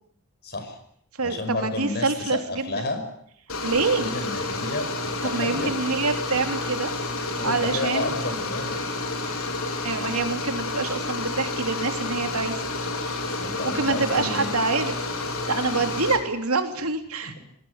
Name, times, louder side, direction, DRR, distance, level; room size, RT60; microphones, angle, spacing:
voice 1, 0.4-0.8 1.2-3.0 4.0-5.7 7.3-8.8 13.2-14.5 17.2-17.5, left 2 dB, 45° left, 8 dB, 5.6 m, -31 dB
voice 2, 1.2-2.7 3.6-4.1 5.3-6.9 7.4-8.1 9.8-12.6 13.7-17.5, right 3 dB, 75° right, 6 dB, 3.3 m, -26 dB
sound 1, 3.5-16.2, left 2 dB, 65° left, 5.1 m, -30 dB
24.5 x 19.0 x 9.7 m, 0.67 s
head